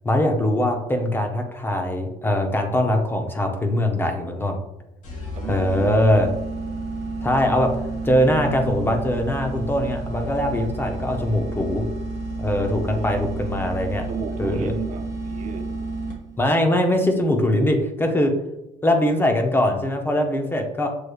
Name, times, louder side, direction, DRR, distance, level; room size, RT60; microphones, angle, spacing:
voice 1, 0.0-4.6 5.5-6.3 7.2-7.7 8.0-11.8 12.4-14.1 14.4-14.7 16.4-18.3 18.8-20.9, left 1 dB, 15° left, 4 dB, 0.6 m, -21 dB
sound 1, 5.0-16.5, right 2 dB, 55° left, 1.5 m, -31 dB
voice 2, 5.3-6.1 12.8-13.2 14.1-15.7, right 6 dB, 50° right, 6 dB, 0.6 m, -35 dB
6.3 x 3.1 x 2.3 m, 0.93 s
cardioid pair, 120°, 15 cm